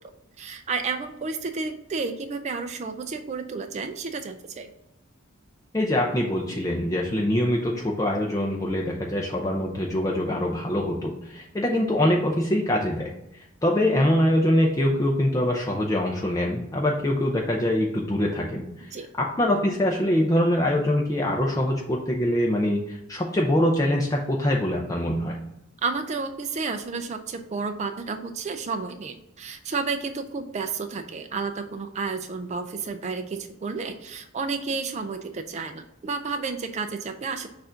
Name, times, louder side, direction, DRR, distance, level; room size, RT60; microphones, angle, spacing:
voice 1, 0.4-4.7 13.9-14.0 18.9-19.1 25.8-37.5, right 4 dB, 35° right, 7 dB, 0.4 m, -31 dB
voice 2, 5.7-13.1 13.6-25.3, left 1 dB, 15° left, -1 dB, 0.6 m, -24 dB
6.8 x 2.6 x 5.5 m, 0.85 s
head